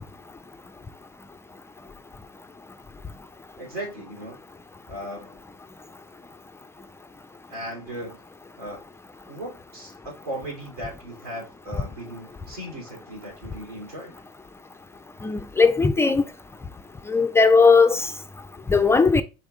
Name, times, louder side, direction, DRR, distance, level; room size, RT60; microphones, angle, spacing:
voice 1, 3.6-4.4 4.9-5.4 7.5-8.2 8.6-8.8 9.3-14.1, right 1 dB, 80° right, 2.6 m, -37 dB
voice 2, 15.2-16.2 17.1-18.1 18.7-19.2, left 4 dB, 15° left, 0.4 m, -18 dB
4.3 x 3.5 x 3.4 m
hypercardioid pair, 70°, 19 cm